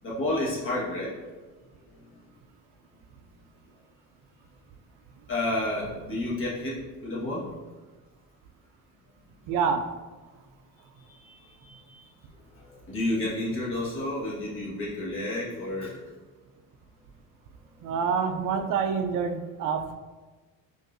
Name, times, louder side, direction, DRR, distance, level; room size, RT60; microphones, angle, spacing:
voice 1, 0.0-1.1 5.3-7.4 11.2-11.3 11.6-12.0 12.6-16.0, left 1 dB, 35° left, -6 dB, 1.4 m, -30 dB
voice 2, 9.5-9.8 17.8-20.0, right 6 dB, 65° right, 7 dB, 0.4 m, -27 dB
5.3 x 2.6 x 2.6 m, 1.3 s
cardioid pair, 120°, 34 cm